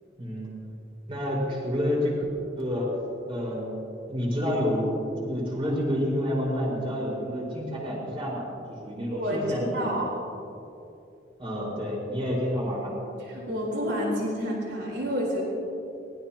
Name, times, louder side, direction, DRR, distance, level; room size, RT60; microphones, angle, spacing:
voice 1, 0.2-0.5 1.1-2.2 2.6-2.9 3.3-3.8 4.1-10.0 11.4-12.9, equal, 30° right, -4 dB, 5.2 m, -29 dB
voice 2, 9.1-10.1 13.2-15.4, equal, 75° right, -3 dB, 4.2 m, -29 dB
24.0 x 20.0 x 3.0 m, 2.8 s
head